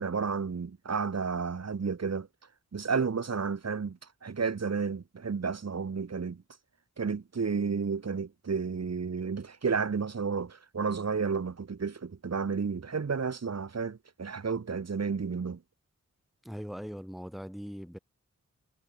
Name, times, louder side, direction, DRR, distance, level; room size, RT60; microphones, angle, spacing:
voice 1, 0.0-2.3 2.7-6.4 7.0-15.6, right 5 dB, 60° right, 6.0 m, -32 dB
voice 2, 16.4-18.0, equal, ahead, 6.5 m, -40 dB
cardioid pair, 75°, 30 cm